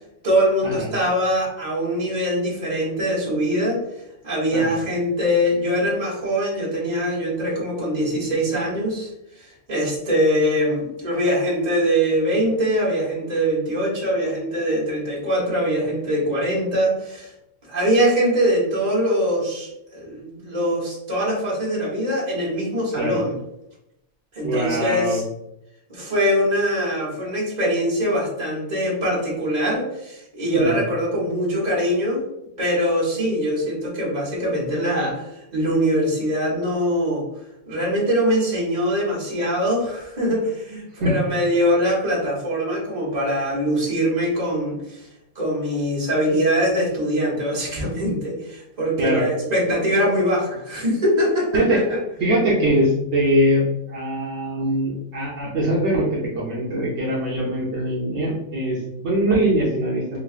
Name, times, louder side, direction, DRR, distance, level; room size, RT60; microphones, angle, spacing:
voice 1, 0.2-3.8 4.2-9.1 9.4-17.3 17.6-23.3 24.3-25.2 25.9-32.2 32.6-37.2 37.7-45.1 45.3-52.0, equal, 35° right, -4 dB, 1.2 m, -22 dB
voice 2, 24.4-25.2 30.5-30.8 41.0-41.1 49.0-49.2 51.5-51.8 52.2-60.2, right 1 dB, 65° right, -5 dB, 1.0 m, -22 dB
4.6 x 2.3 x 2.4 m, 0.83 s
omnidirectional pair, 1.3 m